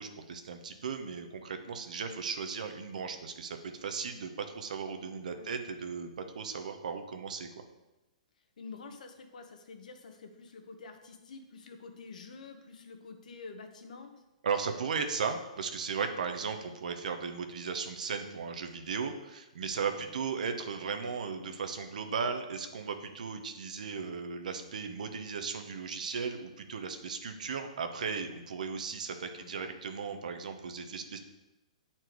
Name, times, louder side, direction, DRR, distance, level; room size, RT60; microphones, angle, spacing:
voice 1, 0.0-6.1 6.3-7.5 14.4-31.2, right 5 dB, 75° right, 7 dB, 0.9 m, -36 dB
voice 2, 8.6-14.1 19.9-20.2 29.4-29.5, left 4 dB, 75° left, 5 dB, 1.2 m, -48 dB
7.8 x 4.4 x 4.6 m, 1.0 s
hypercardioid pair, 145°, 4 cm